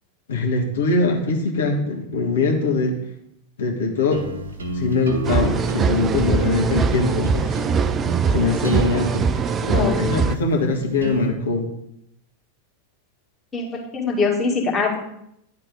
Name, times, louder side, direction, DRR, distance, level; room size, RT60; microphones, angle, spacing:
voice 1, 0.3-3.0 3.6-4.2 4.8-7.6 8.3-9.2 9.7-11.7, left 3 dB, 65° left, 1 dB, 1.4 m, -22 dB
sound 1, 4.1-11.3, right 1 dB, 70° right, 1.2 m, -31 dB
sound 2, 5.2-10.4, right 5 dB, 25° right, 0.3 m, -22 dB
voice 2, 9.7-10.0 13.5-15.0, left 4 dB, 15° left, -3 dB, 2.1 m, -23 dB
10.5 x 4.1 x 5.2 m, 0.77 s
figure-of-eight pair, 90°, 0 cm